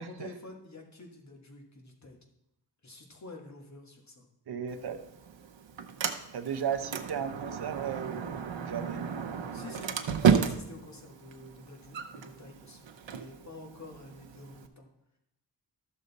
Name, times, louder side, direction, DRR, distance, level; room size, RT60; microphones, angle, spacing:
voice 1, 0.0-2.2 2.8-4.3 9.5-14.9, left 2 dB, 40° left, 2 dB, 1.6 m, -49 dB
voice 2, 4.5-5.0 6.3-9.0, right 8 dB, 60° right, 7 dB, 0.7 m, -35 dB
Sliding door, 4.7-14.7, right 7 dB, 90° right, 0.8 m, -33 dB
13.0 x 6.6 x 4.0 m, 0.81 s
wide cardioid pair, 140°, 43 cm